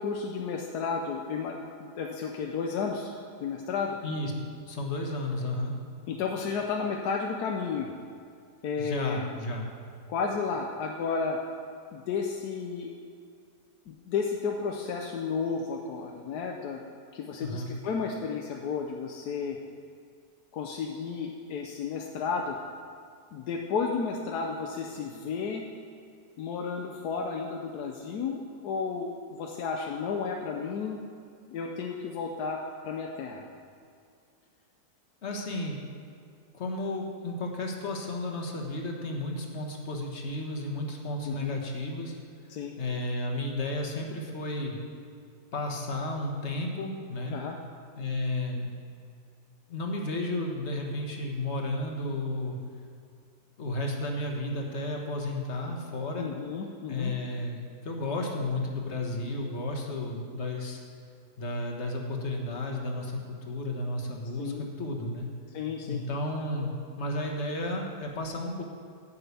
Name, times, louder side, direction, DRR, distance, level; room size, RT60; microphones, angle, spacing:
voice 1, 0.0-3.1 3.4-4.0 6.1-7.9 8.6-9.3 10.1-11.4 11.9-12.9 13.9-16.8 17.1-19.6 20.5-22.6 23.3-25.6 26.4-31.0 31.5-33.5 41.2-41.6 42.5-42.7 47.3-47.6 56.2-57.1 64.4-64.6 65.5-66.0, left 5 dB, 85° left, 1 dB, 1.3 m, -32 dB
voice 2, 4.7-5.7 8.8-9.7 17.4-17.7 35.2-35.8 36.5-42.2 42.8-44.8 45.5-47.3 48.0-48.7 49.7-52.6 53.6-56.3 56.9-60.8 61.4-65.3 65.9-68.6, left 2 dB, 45° left, 1 dB, 1.5 m, -33 dB
9.3 x 5.6 x 8.3 m, 2.3 s
omnidirectional pair, 1.7 m